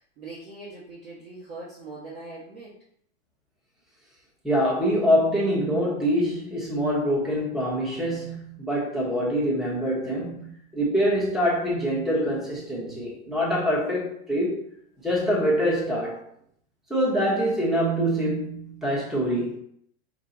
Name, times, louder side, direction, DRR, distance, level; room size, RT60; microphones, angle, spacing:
voice 1, 0.0-2.7, right 2 dB, 40° right, -8 dB, 1.3 m, -41 dB
voice 2, 4.4-14.6 15.0-16.2 16.9-19.6, equal, ahead, -6 dB, 0.9 m, -25 dB
5.5 x 2.2 x 3.8 m, 0.67 s
supercardioid pair, 155°, 36 cm